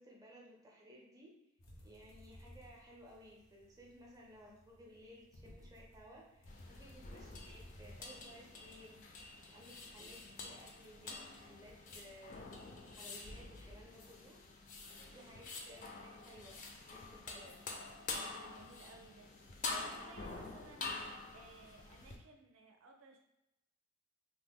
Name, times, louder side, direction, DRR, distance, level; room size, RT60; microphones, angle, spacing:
voice 1, 0.0-1.4 1.8-9.0 9.5-12.4 12.9-14.4 15.1-16.6 16.9-17.6 19.7-20.3, equal, 15° right, -2 dB, 0.5 m, -58 dB
sound 1, 1.6-11.7, left 1 dB, 90° left, 0.7 m, -60 dB
sound 2, 6.5-22.2, left 3 dB, 40° left, 0.4 m, -47 dB
voice 2, 18.4-19.3 19.6-23.2, right 3 dB, 70° right, 3 dB, 0.5 m, -60 dB
2.9 x 2.0 x 3.5 m, 0.90 s
head